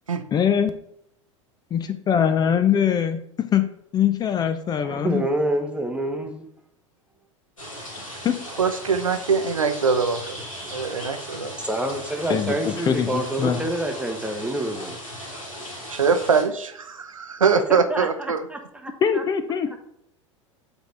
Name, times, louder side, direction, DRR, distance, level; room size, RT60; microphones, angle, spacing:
voice 1, 0.3-0.7 1.7-5.3 8.2-8.4 12.3-13.6 19.0-19.8, left 8 dB, 25° left, 10 dB, 0.5 m, -22 dB
voice 2, 4.8-6.5 11.6-15.0 17.7-19.2, right 1 dB, 5° right, 3 dB, 0.9 m, -27 dB
sound 1, 7.6-16.4, equal, 90° left, 2.2 m, -37 dB
voice 3, 8.6-10.4 10.7-11.6 15.9-18.4, right 5 dB, 85° right, 8 dB, 0.7 m, -23 dB
7.9 x 3.9 x 3.2 m, 0.74 s
figure-of-eight pair, 85°, 17 cm